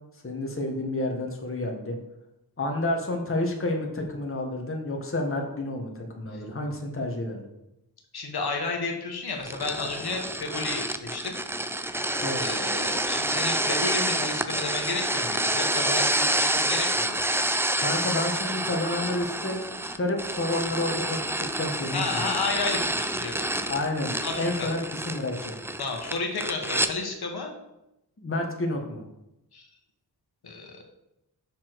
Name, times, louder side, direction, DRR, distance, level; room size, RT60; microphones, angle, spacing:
voice 1, 0.2-2.0 2.6-7.4 12.2-12.5 17.8-19.6 19.9-22.2 23.7-25.6 28.2-29.0, left 2 dB, 30° left, 1 dB, 1.4 m, -30 dB
voice 2, 8.1-11.3 12.4-17.2 21.9-23.5 24.2-24.7 25.8-27.5 29.5-29.7 30.4-30.8, left 3 dB, 65° left, 2 dB, 1.4 m, -32 dB
sound 1, 9.4-26.9, right 1 dB, 5° right, 0.4 m, -28 dB
7.3 x 6.1 x 4.6 m, 0.88 s
wide cardioid pair, 120°, 40 cm